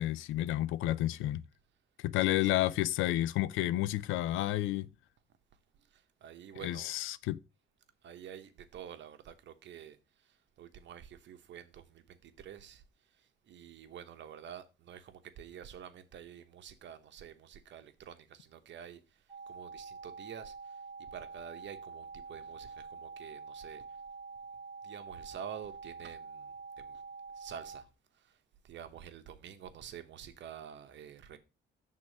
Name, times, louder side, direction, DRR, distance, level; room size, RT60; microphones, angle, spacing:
voice 1, 0.0-1.4 2.0-4.9 6.6-7.4, left 15 dB, 90° left, 0.4 m, -31 dB
voice 2, 2.1-2.5 5.8-7.0 8.0-24.0 24.8-27.0 27.3-31.4, right 9 dB, 65° right, 1.0 m, -49 dB
sound 1, 19.3-27.8, right 4 dB, 20° right, 1.0 m, -47 dB
6.1 x 3.8 x 6.1 m
cardioid pair, 90°, 20 cm